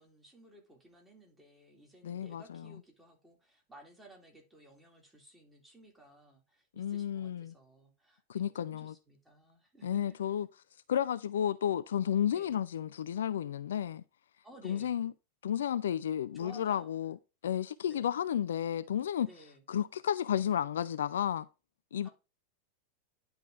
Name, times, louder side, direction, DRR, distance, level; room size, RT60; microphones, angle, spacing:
voice 1, 0.0-10.2 12.3-12.6 14.4-15.0 16.3-16.9 17.8-18.0 19.2-19.6 22.0-22.1, right 1 dB, 10° right, 2.2 m, -57 dB
voice 2, 2.0-2.6 6.8-7.5 8.3-8.9 9.8-10.5 10.9-14.0 14.6-15.1 15.4-17.2 17.4-19.3 19.7-21.5 21.9-22.1, left 9 dB, 65° left, 0.3 m, -32 dB
10.5 x 3.5 x 3.6 m
figure-of-eight pair, 90°, 0 cm